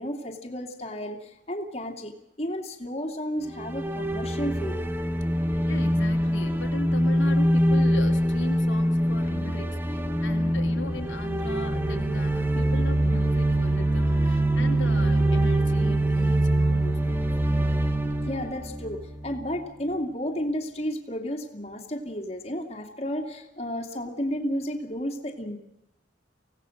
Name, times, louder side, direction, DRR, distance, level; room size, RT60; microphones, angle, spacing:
voice 1, 0.0-2.1 2.4-4.9 18.3-25.6, equal, 30° left, 1 dB, 2.5 m, -32 dB
sound 1, 3.5-19.6, right 1 dB, 10° right, 1.3 m, -24 dB
voice 2, 5.6-17.4, left 2 dB, 75° left, 2 dB, 2.6 m, -38 dB
25.0 x 17.5 x 6.5 m, 0.88 s
head